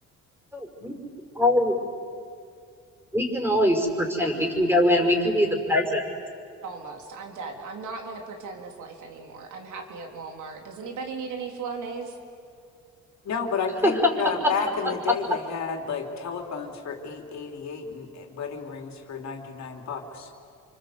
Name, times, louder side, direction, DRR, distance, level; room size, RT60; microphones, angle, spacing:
voice 1, 0.5-0.9 1.4-1.8 3.1-6.0 13.8-13.9, left 1 dB, 10° right, 3 dB, 5.5 m, -22 dB
voice 2, 6.6-12.1, right 4 dB, 80° right, 3 dB, 3.7 m, -37 dB
voice 3, 13.2-20.3, left 5 dB, 65° left, 3 dB, 3.4 m, -32 dB
28.0 x 25.0 x 8.1 m, 2.4 s
cardioid pair, 90°, 30 cm